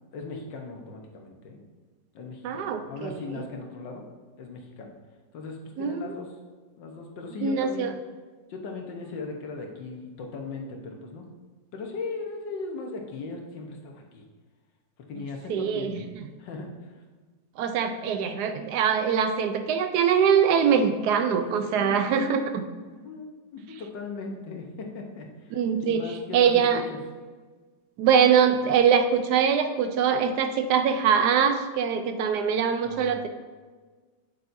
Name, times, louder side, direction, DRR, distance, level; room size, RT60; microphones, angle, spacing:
voice 1, 0.1-1.6 2.1-4.1 4.4-5.0 5.3-6.3 6.8-8.0 8.5-11.3 11.7-14.2 15.0-16.1 16.4-17.0 21.6-27.0 32.8-33.3, left 3 dB, 80° left, 2 dB, 1.7 m, -38 dB
voice 2, 2.4-3.5 5.8-6.0 7.4-7.9 15.5-16.0 17.6-22.4 25.5-26.0 26.3-26.8 28.0-33.3, right 7 dB, 70° right, 8 dB, 1.1 m, -23 dB
8.3 x 8.3 x 2.7 m, 1.4 s
omnidirectional pair, 1.9 m